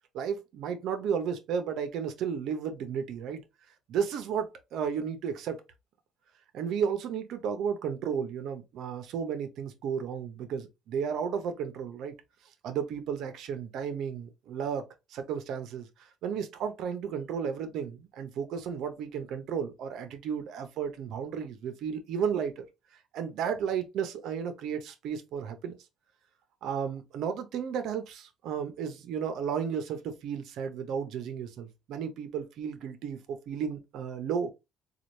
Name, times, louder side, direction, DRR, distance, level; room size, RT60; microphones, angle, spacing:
voice 1, 0.1-3.4 3.9-5.6 6.5-12.1 12.6-22.7 23.1-25.7 26.6-34.5, right 7 dB, 70° right, 0.8 m, -33 dB
4.0 x 2.4 x 3.1 m
cardioid pair, 110°, 0 cm